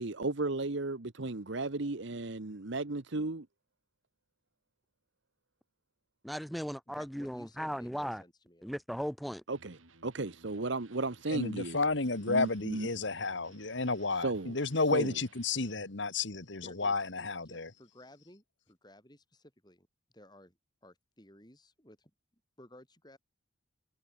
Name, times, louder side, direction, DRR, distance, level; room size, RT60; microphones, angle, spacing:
voice 1, 0.0-3.5 9.5-11.8 12.3-12.9 14.2-14.5 14.9-15.1, right 2 dB, 65° right, 1.1 m, -35 dB
voice 2, 6.2-8.2 8.6-9.4, equal, ahead, 1.3 m, -37 dB
voice 3, 6.9-8.8 16.6-19.9 20.1-22.1 22.6-23.2, left 1 dB, 20° left, 6.2 m, -57 dB
Electric guitar, 9.5-15.9, right 3 dB, 80° right, 5.6 m, -61 dB
voice 4, 11.3-17.7, left 3 dB, 65° left, 1.7 m, -32 dB
head